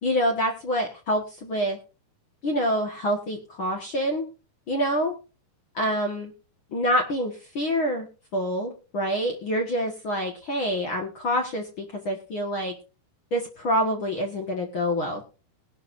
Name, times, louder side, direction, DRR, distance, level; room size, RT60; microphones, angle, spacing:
voice 1, 0.0-1.8 2.4-4.3 4.7-5.1 5.7-6.3 6.7-8.1 8.3-12.7 13.3-15.2, equal, 55° left, 2 dB, 1.4 m, -26 dB
20.0 x 11.0 x 2.6 m, 0.34 s
omnidirectional pair, 4.7 m